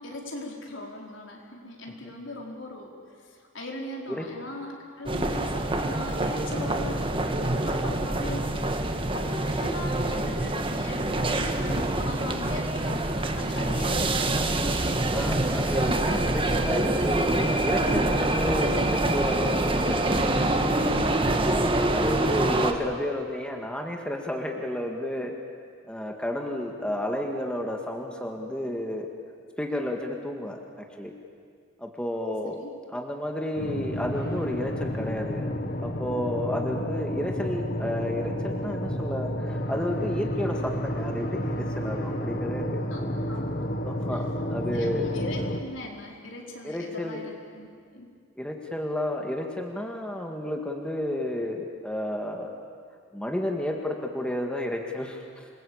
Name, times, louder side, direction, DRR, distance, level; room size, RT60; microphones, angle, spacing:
voice 1, 0.0-13.1 13.4-14.4 32.4-32.7 42.9-43.0 43.3-43.7 44.7-47.7 47.9-48.1, left 1 dB, 70° left, 0 dB, 4.4 m, -39 dB
sound 1, 5.1-22.7, right 2 dB, 25° right, 1.6 m, -26 dB
voice 2, 13.5-13.8 15.1-25.3 25.9-29.1 29.6-31.1 31.8-32.6 32.9-42.9 43.8-45.1 46.6-47.2 48.4-52.5 53.1-55.5, left 1 dB, 5° left, 2 dB, 1.9 m, -32 dB
sound 2, 33.6-45.6, equal, 50° left, 1.9 m, -31 dB
27.5 x 21.5 x 8.7 m, 2.1 s
head